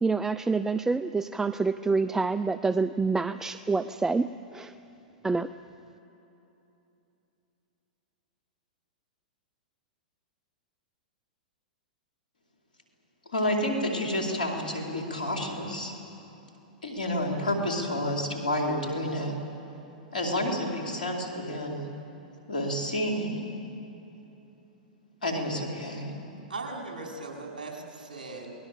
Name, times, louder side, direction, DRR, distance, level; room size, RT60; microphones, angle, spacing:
voice 1, 0.0-4.7 5.2-5.5, right 4 dB, 10° right, 13 dB, 0.5 m, -27 dB
voice 2, 13.3-15.9 16.8-19.3 20.1-21.9 22.5-23.4 25.2-26.1, left 1 dB, 80° left, 1 dB, 4.3 m, -29 dB
voice 3, 26.5-28.5, right 3 dB, 80° right, 0 dB, 5.0 m, -38 dB
28.0 x 20.0 x 7.6 m, 3.0 s
hypercardioid pair, 105°, 5 cm